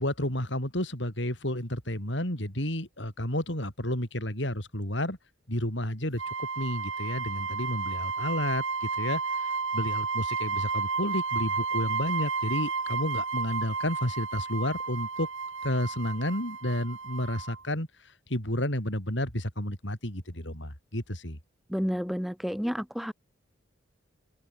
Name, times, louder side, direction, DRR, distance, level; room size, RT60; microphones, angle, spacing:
voice 1, 0.0-5.2 5.5-15.3 15.6-21.4, left 1 dB, 65° left, 7.8 m, -31 dB
sound 1, 6.2-17.6, right 4 dB, 85° right, 3.9 m, -32 dB
voice 2, 21.7-23.1, equal, ahead, 2.1 m, -30 dB
open air
head